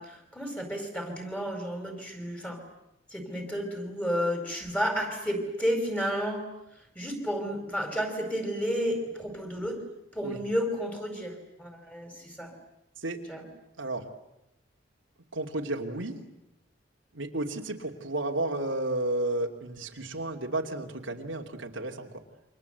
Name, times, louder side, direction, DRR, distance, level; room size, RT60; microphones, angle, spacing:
voice 1, 0.0-2.6 3.1-6.4 6.9-9.9 10.1-12.5 13.3-13.4, equal, 5° left, 4 dB, 4.9 m, -32 dB
voice 2, 15.3-16.2 17.1-22.1, right 2 dB, 80° right, 2 dB, 2.6 m, -32 dB
28.5 x 25.5 x 8.1 m, 0.89 s
head